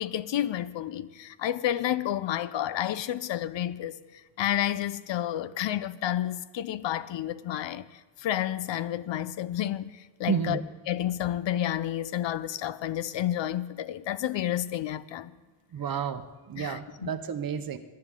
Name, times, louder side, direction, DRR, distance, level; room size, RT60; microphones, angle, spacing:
voice 1, 0.0-7.9 8.2-10.6 10.9-15.3 16.6-17.1, left 12 dB, 70° left, 0.6 m, -30 dB
voice 2, 10.3-10.6 15.7-17.8, right 7 dB, 50° right, 0.8 m, -31 dB
22.0 x 11.0 x 3.7 m
wide cardioid pair, 140°, 46 cm